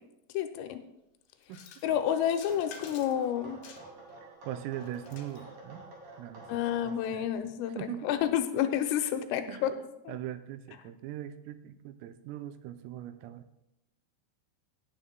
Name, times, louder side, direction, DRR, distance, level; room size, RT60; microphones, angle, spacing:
voice 1, 0.3-0.8 1.8-3.6 6.5-9.7 10.1-10.2, left 10 dB, 85° left, 7 dB, 3.2 m, -30 dB
sound 1, 1.4-1.9 2.3-3.3 3.6-4.1 4.8-5.5, left 7 dB, 70° left, 3.1 m, -50 dB
sound 2, 1.8-7.1, right 2 dB, 45° right, 3.2 m, -50 dB
voice 2, 4.2-5.8 6.2-6.5 6.8-7.3 7.8-8.1 9.5-9.7 10.1-13.5, right 11 dB, 85° right, 9 dB, 3.3 m, -41 dB
17.0 x 10.0 x 2.2 m, 0.87 s
omnidirectional pair, 6.0 m